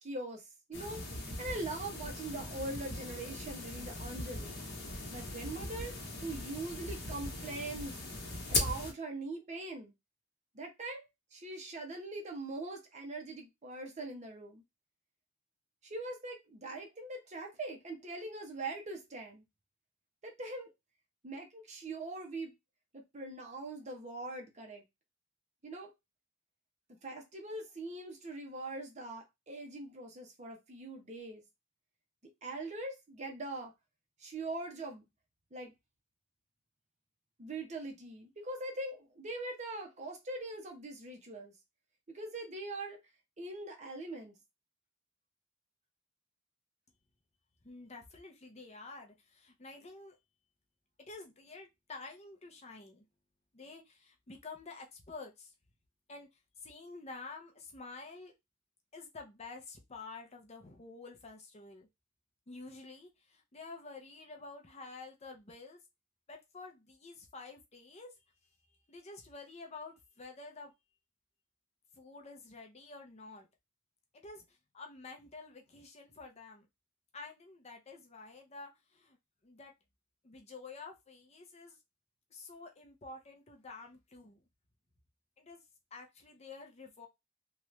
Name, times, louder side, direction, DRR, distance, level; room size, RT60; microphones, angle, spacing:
voice 1, 0.0-4.6 4.9-6.0 6.2-8.0 8.5-9.9 10.5-14.6 15.8-19.4 20.2-20.7 21.2-22.5 22.9-24.8 25.6-25.9 26.9-31.4 32.4-33.7 34.2-35.0 35.5-35.7 37.4-41.5 42.1-43.0 43.4-44.4, right 2 dB, 35° right, 0.8 m, -42 dB
sound 1, 0.7-8.9, left 2 dB, 50° left, 1.1 m, -39 dB
voice 2, 47.6-50.2 51.0-53.0 53.5-55.5 56.1-56.3 56.6-58.3 58.9-61.9 62.5-65.8 66.3-68.1 68.9-70.7 71.9-73.5 74.1-76.7 77.1-79.2 79.4-79.7 80.2-81.8 82.3-84.4 85.4-85.6 85.9-87.1, left 3 dB, 30° left, 0.6 m, -49 dB
2.9 x 2.4 x 3.1 m
head